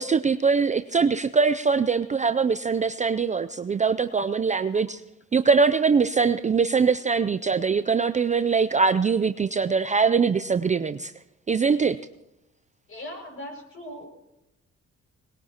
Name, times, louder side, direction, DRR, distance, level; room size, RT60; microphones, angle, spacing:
voice 1, 0.0-5.0 5.3-11.1 11.5-12.0, right 5 dB, 25° right, 10 dB, 0.4 m, -22 dB
voice 2, 12.9-14.1, left 1 dB, 45° left, 1 dB, 5.8 m, -39 dB
21.0 x 20.0 x 2.9 m, 0.91 s
cardioid pair, 90°, 30 cm